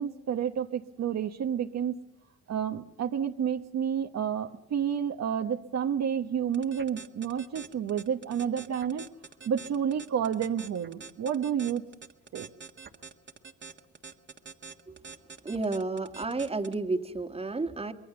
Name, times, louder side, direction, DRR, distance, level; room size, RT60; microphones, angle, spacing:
voice 1, 0.0-2.0 2.5-9.0 9.5-11.8 12.3-12.5, right 8 dB, 60° right, 6 dB, 1.1 m, -30 dB
sound 1, 6.5-16.7, right 5 dB, 40° right, 1.5 m, -45 dB
voice 2, 15.4-17.9, right 3 dB, 20° right, 7 dB, 1.7 m, -31 dB
25.0 x 22.0 x 7.0 m, 0.92 s
cardioid pair, 90°, 30 cm